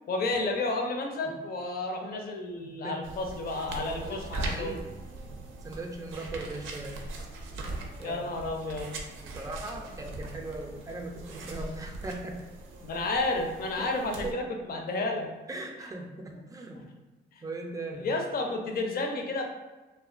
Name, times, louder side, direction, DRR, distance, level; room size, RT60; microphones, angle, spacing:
voice 1, 0.1-4.8 8.0-8.9 12.8-14.4 14.7-15.3 17.3-17.4 18.0-19.4, left 2 dB, 50° left, 3 dB, 0.5 m, -31 dB
voice 2, 2.6-3.1 3.3-3.4 3.8-4.9 5.6-7.0 8.0-8.2 9.2-12.4 13.8-13.9 14.2-14.6 15.5-16.8 17.4-18.1, right 2 dB, 15° right, 1 dB, 0.4 m, -39 dB
sound 1, 3.0-14.3, right 2 dB, 80° right, 0.4 m, -40 dB
2.4 x 2.2 x 2.4 m, 1.2 s
cardioid pair, 90°, 20 cm